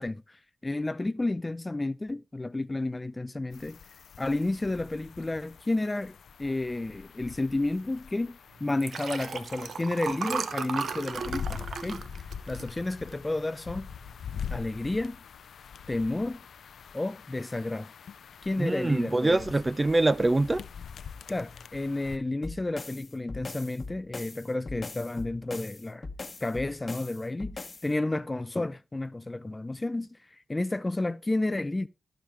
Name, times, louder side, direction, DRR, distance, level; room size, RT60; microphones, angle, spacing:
voice 1, 0.0-3.8 4.2-12.0 12.5-13.9 14.5-15.2 15.9-16.4 16.9-17.9 18.4-19.4 21.3-26.1 26.4-30.2 30.5-31.9, left 2 dB, 25° left, 0.4 m, -31 dB
sound 1, 3.5-22.2, left 7 dB, 80° left, 0.5 m, -44 dB
Liquid, 8.7-13.3 13.8-14.1 14.3-14.4, right 5 dB, 80° right, 0.7 m, -35 dB
voice 2, 18.6-20.6, right 2 dB, 30° right, 0.5 m, -24 dB
sound 2, 22.4-27.9, left 3 dB, 40° left, 1.0 m, -41 dB
14.5 x 5.1 x 3.3 m
cardioid pair, 60°, 0 cm